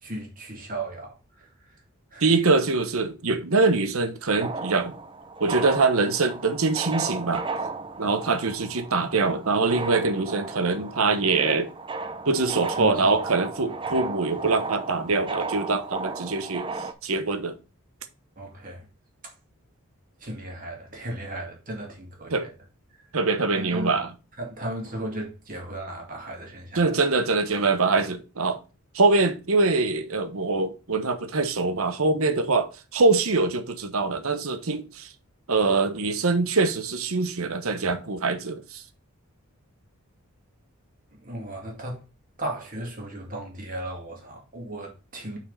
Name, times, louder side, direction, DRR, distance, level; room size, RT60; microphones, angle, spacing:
voice 1, 0.0-1.5 2.1-2.3 12.8-13.1 13.8-14.0 18.4-18.9 19.2-19.3 20.2-22.5 23.5-23.9 24.4-26.8 41.1-42.0 42.4-45.4, right 1 dB, 40° right, 2.2 m, -36 dB
voice 2, 2.2-4.9 5.4-7.4 8.0-11.7 12.3-16.7 17.0-17.5 22.3-22.5 23.1-24.1 26.8-28.6 28.9-35.1 35.5-38.8, right 3 dB, 70° right, 1.0 m, -23 dB
sound 1, 4.3-16.9, right 4 dB, 20° right, 0.5 m, -35 dB
5.9 x 4.5 x 5.5 m
head